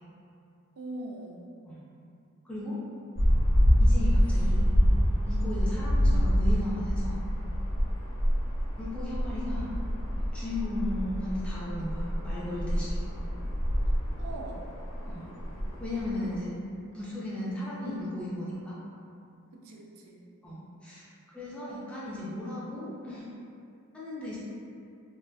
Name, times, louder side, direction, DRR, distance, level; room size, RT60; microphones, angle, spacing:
voice 1, 0.8-1.5 14.2-14.7 16.2-16.3 16.8-17.5 19.5-20.2, right 2 dB, 75° right, 0 dB, 0.4 m, -43 dB
voice 2, 2.4-2.8 3.8-4.7 5.3-7.2 8.8-9.7 10.3-13.0 15.0-15.3 15.8-16.5 16.9-18.8 20.4-23.3 23.9-24.4, left 1 dB, 5° left, -9 dB, 0.3 m, -36 dB
sound 1, 3.2-16.4, equal, 65° left, 0.5 m, -26 dB
2.3 x 2.2 x 2.5 m, 2.5 s
head